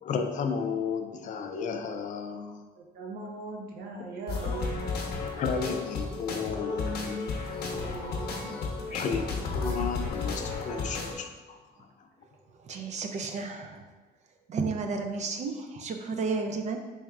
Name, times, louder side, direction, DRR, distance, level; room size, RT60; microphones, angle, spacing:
voice 1, 0.0-2.6 5.4-7.4 8.9-11.6, left 5 dB, 50° left, 6 dB, 0.4 m, -33 dB
voice 2, 2.7-5.0 7.5-8.5 8.9-9.1 11.8-11.9, right 3 dB, 65° right, 0 dB, 0.8 m, -40 dB
sound 1, 4.3-11.1, left 4 dB, 70° left, 0.8 m, -33 dB
voice 3, 12.6-13.8 14.5-16.8, right 4 dB, 45° right, 6 dB, 0.4 m, -32 dB
4.0 x 3.4 x 2.4 m, 1.3 s
cardioid pair, 110°, 17 cm